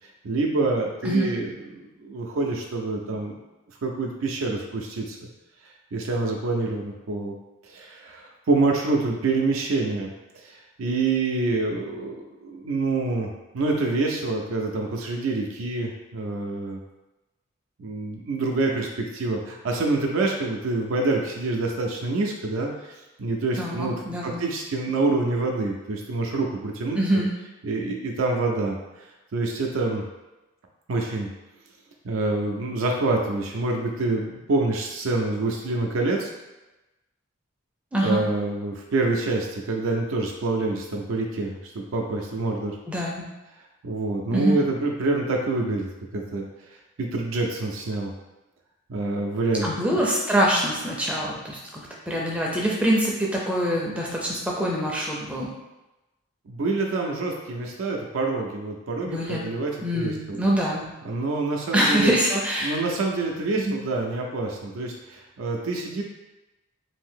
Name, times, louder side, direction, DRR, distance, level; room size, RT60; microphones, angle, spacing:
voice 1, 0.2-3.4 3.8-5.2 5.6-7.3 7.6-16.8 17.8-27.0 27.6-30.0 30.9-31.3 32.0-36.3 38.0-42.8 43.8-46.5 47.0-48.1 48.9-49.7 56.5-60.4 61.0-62.2 62.6-66.0, right 3 dB, 85° right, 0 dB, 0.4 m, -27 dB
voice 2, 23.6-24.4 26.9-27.3 37.9-38.2 42.9-43.3 44.3-44.6 49.6-55.5 59.0-59.5 59.8-60.9 61.7-62.8 63.5-63.7, equal, 5° right, -3 dB, 0.4 m, -24 dB
2.7 x 2.6 x 3.6 m, 1.0 s
head